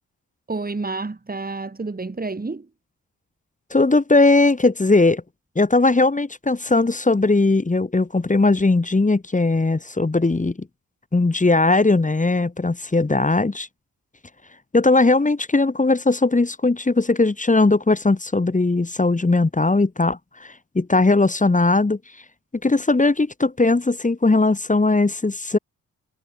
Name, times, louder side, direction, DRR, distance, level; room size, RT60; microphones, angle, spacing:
voice 1, 0.5-2.7, right 3 dB, 25° right, 2.9 m, -29 dB
voice 2, 3.7-5.2 5.6-10.7 11.1-13.7 14.7-22.0 22.6-25.6, left 3 dB, 20° left, 1.8 m, -19 dB
cardioid pair, 65°, 34 cm